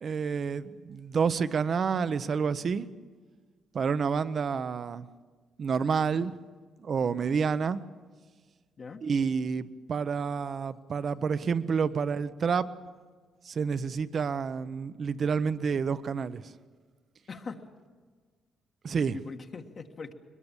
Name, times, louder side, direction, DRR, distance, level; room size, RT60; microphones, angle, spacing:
voice 1, 0.0-2.9 3.7-5.1 5.6-6.4 6.8-7.8 9.0-12.7 13.4-16.5 18.8-19.2, right 6 dB, 50° right, 14 dB, 0.8 m, -29 dB
voice 2, 17.3-17.6 18.9-20.1, left 4 dB, 45° left, 3 dB, 1.5 m, -42 dB
21.5 x 21.0 x 7.2 m, 1.5 s
cardioid pair, 90°, 0 cm